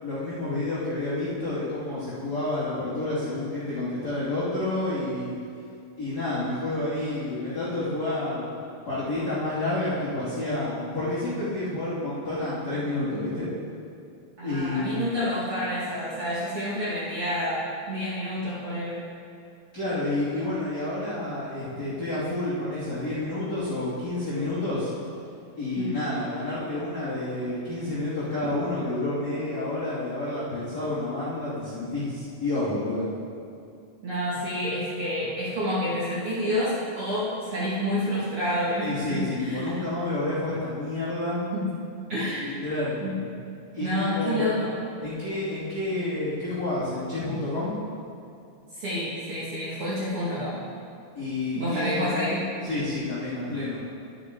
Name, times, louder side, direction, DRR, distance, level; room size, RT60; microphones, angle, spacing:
voice 1, 0.0-5.3 6.0-8.5 8.9-13.5 14.4-15.0 19.7-24.9 25.6-33.0 38.8-41.4 42.4-43.0 43.7-44.4 45.0-47.8 51.1-52.1 52.6-53.8, left 2 dB, 30° left, -13 dB, 2.8 m, -29 dB
voice 2, 14.4-19.0 25.8-26.0 34.0-39.7 41.5-41.7 42.1-42.4 43.0-43.2 43.8-44.7 48.7-50.6 51.5-52.5, equal, 45° right, -9 dB, 2.5 m, -28 dB
11.0 x 10.0 x 3.8 m, 2.5 s
omnidirectional pair, 4.1 m